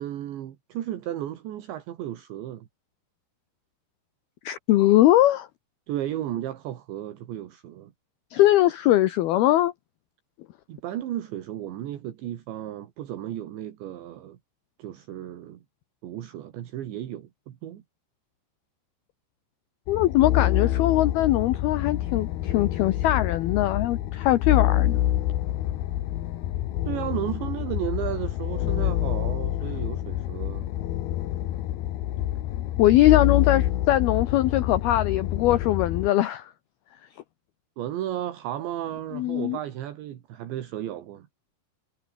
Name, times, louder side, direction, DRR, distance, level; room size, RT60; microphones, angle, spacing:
voice 1, 0.0-2.7 5.9-7.9 10.7-14.4 14.8-15.6 16.0-17.8 26.9-30.7 37.8-41.3, right 12 dB, 70° right, 4.1 m, -34 dB
voice 2, 4.5-5.5 8.3-9.7 19.9-25.0 32.8-36.5 39.1-39.6, left 14 dB, 80° left, 2.3 m, -21 dB
sound 1, 19.9-36.1, left 13 dB, 65° left, 2.8 m, -27 dB
omnidirectional pair, 5.7 m